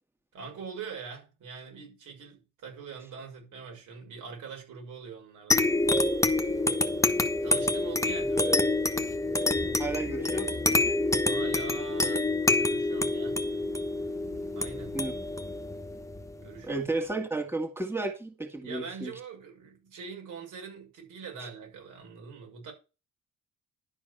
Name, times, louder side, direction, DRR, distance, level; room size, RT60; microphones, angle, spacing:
voice 1, 0.3-5.7 7.4-8.7 11.2-12.3 12.5-13.4 14.5-15.0 16.4-16.9 18.6-22.7, right 5 dB, 80° right, 6.2 m, -43 dB
sound 1, 5.5-16.6, left 2 dB, 10° left, 1.3 m, -27 dB
voice 2, 9.8-11.0 14.9-15.1 16.6-19.1 21.4-21.5, right 2 dB, 10° right, 2.2 m, -33 dB
11.5 x 4.5 x 7.9 m
cardioid pair, 90°, 30 cm